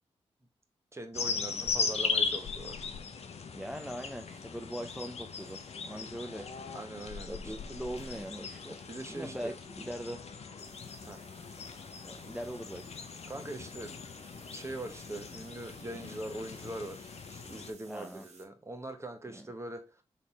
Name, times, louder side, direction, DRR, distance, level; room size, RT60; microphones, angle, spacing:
voice 1, 0.9-2.8 6.7-7.5 8.9-9.5 11.1-11.2 13.3-13.9 14.3-20.0, right 1 dB, 25° right, 1.1 m, -42 dB
sound 1, 1.1-17.7, left 5 dB, 65° left, 0.6 m, -38 dB
sound 2, 2.2-2.7 4.4-5.7 6.1-6.4 8.0-10.1 10.6-18.4, right 3 dB, 70° right, 1.3 m, -60 dB
voice 2, 3.5-6.5 7.3-10.2 12.0-13.0 17.9-18.3 19.3-19.5, equal, 5° right, 0.6 m, -41 dB
4.0 x 3.2 x 4.1 m
cardioid pair, 50°, 12 cm